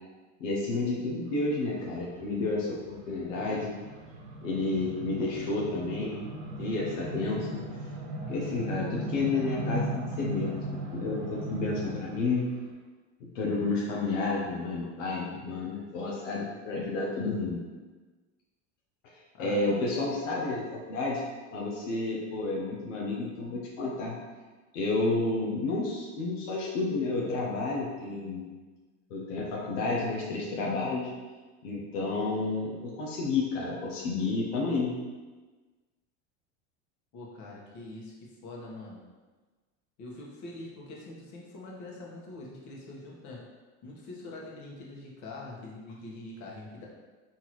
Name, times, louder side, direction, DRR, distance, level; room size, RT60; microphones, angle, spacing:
voice 1, 0.4-3.7 4.4-6.2 6.6-7.6 8.3-12.5 13.2-17.6 19.1-21.2 21.5-24.2 24.7-28.5 29.1-31.1 31.6-35.0, left 3 dB, 90° left, -3 dB, 0.9 m, -31 dB
sound 1, 1.9-12.3, right 1 dB, 75° right, 1.0 m, -37 dB
voice 2, 37.1-39.0 40.0-43.5 43.8-46.9, left 2 dB, 55° left, -3 dB, 1.3 m, -44 dB
4.4 x 3.7 x 3.1 m, 1.3 s
supercardioid pair, 100°, 36 cm